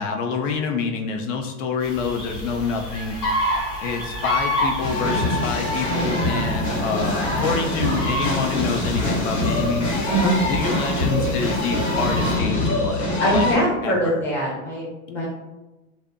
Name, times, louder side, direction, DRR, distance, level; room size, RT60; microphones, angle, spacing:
voice 1, 0.0-3.2 3.8-9.9 10.5-13.5 13.8-14.2, left 5 dB, 60° left, 3 dB, 0.5 m, -27 dB
sound 1, 1.8-12.4, equal, 85° left, 1.0 m, -30 dB
sound 2, 4.8-13.5, left 1 dB, 45° left, 0.9 m, -24 dB
voice 2, 10.1-10.4 13.2-15.3, right 1 dB, 5° left, -6 dB, 0.4 m, -22 dB
2.6 x 2.0 x 2.4 m, 1.1 s
supercardioid pair, 125°, 43 cm